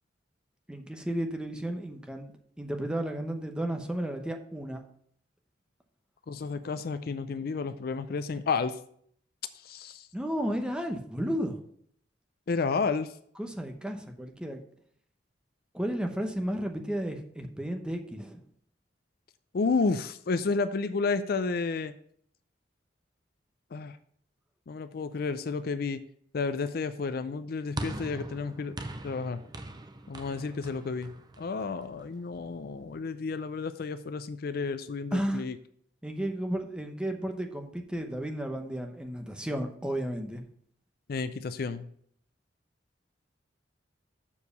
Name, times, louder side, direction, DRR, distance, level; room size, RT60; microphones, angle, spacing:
voice 1, 0.7-2.3 2.6-4.8 10.1-11.6 13.4-14.6 15.7-18.4 35.1-35.4 36.0-40.4, right 1 dB, 5° right, 4 dB, 0.9 m, -33 dB
voice 2, 6.3-8.8 9.6-10.1 12.5-13.1 19.5-21.9 23.7-24.0 24.7-26.0 26.3-28.8 29.0-29.4 30.1-31.1 31.4-35.6 41.1-41.9, left 4 dB, 55° left, 12 dB, 0.4 m, -31 dB
sound 1, 27.8-32.2, right 1 dB, 25° right, 0.6 m, -41 dB
7.1 x 4.7 x 6.7 m, 0.64 s
head